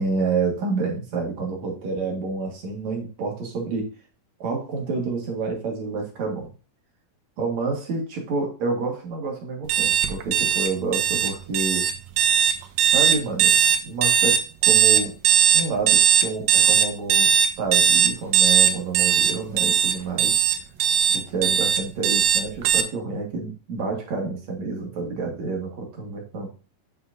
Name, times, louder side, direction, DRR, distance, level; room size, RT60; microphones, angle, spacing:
voice 1, 0.0-3.9 4.4-6.5 7.4-11.9 12.8-15.1 15.5-20.3 21.1-26.5, right 4 dB, 55° right, 0 dB, 2.7 m, -29 dB
sound 1, 9.7-22.8, right 8 dB, 85° right, 1.5 m, -19 dB
8.3 x 5.7 x 2.6 m, 0.34 s
omnidirectional pair, 4.1 m